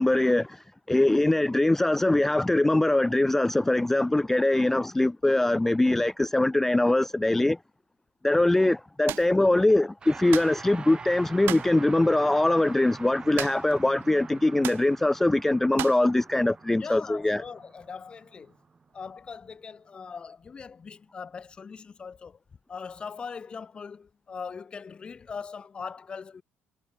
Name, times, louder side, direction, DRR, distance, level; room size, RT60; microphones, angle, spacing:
voice 1, 0.0-7.6 8.2-17.4, left 2 dB, 10° left, 0.4 m, -22 dB
sound 1, 9.1-9.3 10.3-10.6 11.4-11.7 13.4-13.8 14.0-14.1 14.6-14.9 15.8-16.1, right 15 dB, 70° right, 1.6 m, -34 dB
sound 2, 10.0-19.5, right 5 dB, 25° right, 3.1 m, -45 dB
voice 2, 16.8-18.6 18.9-22.4 22.7-26.4, left 5 dB, 25° left, 1.6 m, -40 dB
cardioid pair, 150°, 4 cm